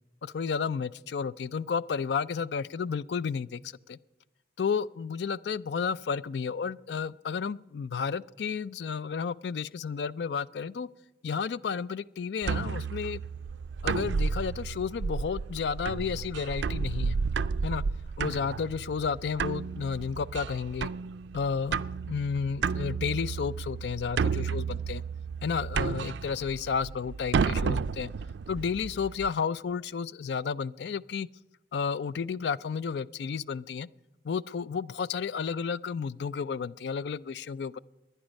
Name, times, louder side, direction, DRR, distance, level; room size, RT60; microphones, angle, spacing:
voice 1, 0.2-3.6 3.9-4.0 4.6-10.9 11.2-13.2 13.8-17.2 17.6-17.8 18.2-20.9 21.3-25.0 25.4-28.1 28.5-31.3 31.7-33.9 34.2-37.8, left 6 dB, 70° left, 19 dB, 0.4 m, -32 dB
sound 1, 12.4-29.3, right 5 dB, 85° right, 0.4 m, -32 dB
20.0 x 10.0 x 5.2 m, 1.1 s
head